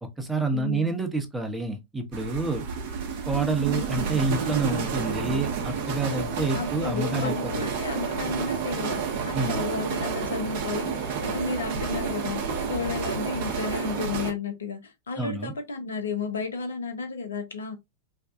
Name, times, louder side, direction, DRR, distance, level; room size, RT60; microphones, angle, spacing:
voice 1, 0.0-2.7 3.3-7.7 9.3-9.6 15.2-15.5, right 3 dB, 10° right, 0.7 m, -28 dB
voice 2, 0.5-0.9 6.5-17.8, left 4 dB, 70° left, 0.7 m, -32 dB
sound 1, 2.1-14.3, right 6 dB, 50° right, 0.7 m, -30 dB
2.6 x 2.2 x 2.4 m
figure-of-eight pair, 90°, 0 cm